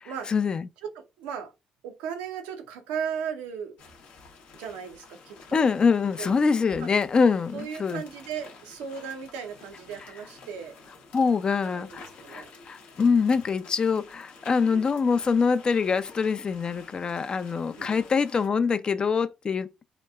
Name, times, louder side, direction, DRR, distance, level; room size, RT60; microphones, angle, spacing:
voice 1, 0.0-0.7 5.5-8.0 11.1-19.7, left 5 dB, 40° left, 0.3 m, -24 dB
voice 2, 0.9-1.5 1.8-3.8 4.5-5.7 6.2-6.4 6.8-6.9 7.5-10.8 11.6-12.5 14.7-14.8 17.8-18.0, right 7 dB, 90° right, 0.5 m, -36 dB
sound 1, 3.8-18.5, left 4 dB, 75° left, 0.7 m, -50 dB
2.8 x 2.2 x 2.2 m
supercardioid pair, 60°, 2 cm